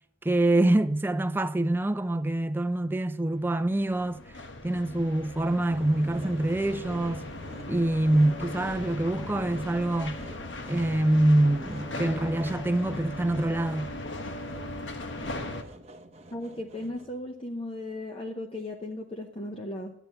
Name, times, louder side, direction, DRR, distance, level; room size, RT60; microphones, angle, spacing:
voice 1, 0.2-4.2 4.6-7.3 7.7-10.2 10.7-13.9, right 1 dB, 10° right, 0.4 m, -25 dB
sound 1, 3.4-15.6, left 2 dB, 70° left, 1.2 m, -38 dB
Sawing, 5.2-17.3, right 1 dB, 35° right, 0.8 m, -49 dB
voice 2, 16.3-19.9, left 1 dB, 30° left, 0.7 m, -36 dB
12.0 x 9.1 x 5.6 m
head